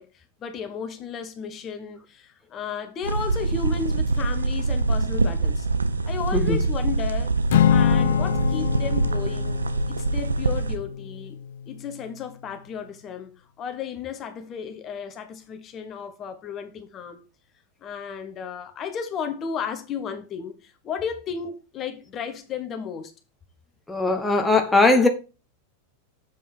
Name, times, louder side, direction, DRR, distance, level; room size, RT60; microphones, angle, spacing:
voice 1, 0.0-5.7 6.0-7.3 7.7-9.6 9.9-17.2 17.8-23.1, left 7 dB, 30° left, 1.2 m, -34 dB
sound 1, 3.0-10.8, right 3 dB, 75° right, 1.0 m, -24 dB
Acoustic guitar / Strum, 7.5-12.0, left 10 dB, 60° left, 0.4 m, -25 dB
voice 2, 23.9-25.1, left 3 dB, 5° left, 1.3 m, -19 dB
7.6 x 5.3 x 4.4 m
figure-of-eight pair, 90°, 0 cm